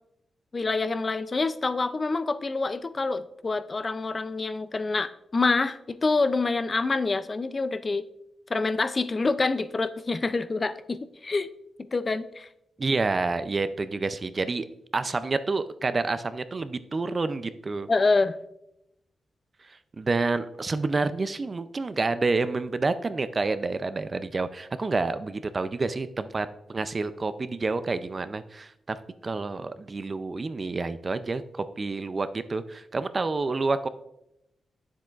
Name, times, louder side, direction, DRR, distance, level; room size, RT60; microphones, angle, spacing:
voice 1, 0.5-8.0 8.5-11.5 11.9-12.5 17.9-18.4, left 3 dB, 35° left, 13 dB, 0.4 m, -26 dB
voice 2, 12.8-14.7 14.9-17.9 20.0-29.0 29.2-33.9, right 3 dB, 35° right, 12 dB, 0.4 m, -28 dB
9.2 x 7.4 x 2.4 m, 0.82 s
cardioid pair, 95°, 0 cm